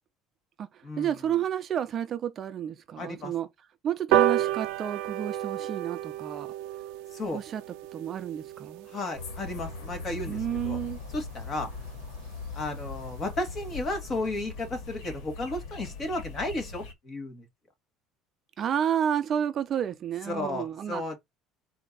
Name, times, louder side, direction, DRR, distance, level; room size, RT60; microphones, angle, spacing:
voice 1, 0.6-3.5 3.8-6.5 7.3-7.6 7.9-8.9 10.3-11.0 18.6-21.0, right 9 dB, 35° right, 0.6 m, -31 dB
voice 2, 3.0-3.3 7.1-7.4 8.9-10.4 10.6-10.8 11.1-11.7 12.5-17.5 20.3-21.2, left 2 dB, 30° left, 1.9 m, -33 dB
sound 1, 4.1-10.9 11.3-11.4 11.7-11.8 12.1-12.2 12.5-12.6 12.8-13.1 13.5-13.6, right 12 dB, 80° right, 0.5 m, -31 dB
sound 2, 9.1-16.9, left 4 dB, 75° left, 1.7 m, -40 dB
4.3 x 2.8 x 3.9 m
cardioid pair, 140°, 0 cm